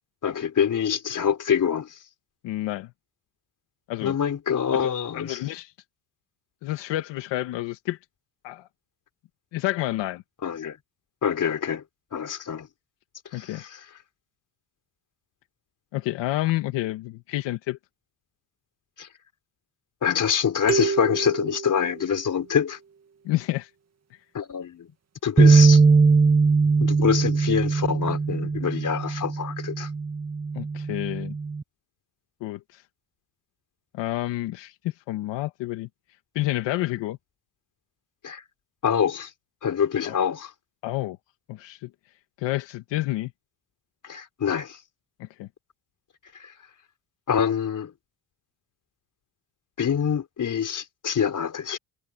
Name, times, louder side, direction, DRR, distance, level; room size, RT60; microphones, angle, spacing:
voice 1, 0.2-2.0 4.0-5.4 10.4-10.8 11.2-11.8 12.1-12.7 13.3-13.8 19.0-19.1 20.0-22.8 24.3-24.9 25.2-25.8 26.8-29.9 38.2-38.4 38.8-39.3 39.6-40.5 44.0-44.8 46.3-46.5 47.3-47.9 49.8-51.8, left 8 dB, 45° left, 4.1 m, -25 dB
voice 2, 2.4-2.9 3.9-4.2 4.7-5.7 6.6-8.0 8.4-8.7 9.5-10.2 13.3-13.6 15.9-17.8 23.2-23.7 30.5-31.3 32.4-32.8 33.9-35.9 36.4-37.2 40.1-40.2 40.8-41.2 41.5-41.9 42.4-43.3 45.2-45.5, left 16 dB, 85° left, 1.8 m, -29 dB
sound 1, 20.7-22.6, right 6 dB, 35° right, 2.2 m, -29 dB
sound 2, 25.4-31.6, right 4 dB, 15° right, 0.3 m, -20 dB
cardioid pair, 95°, 42 cm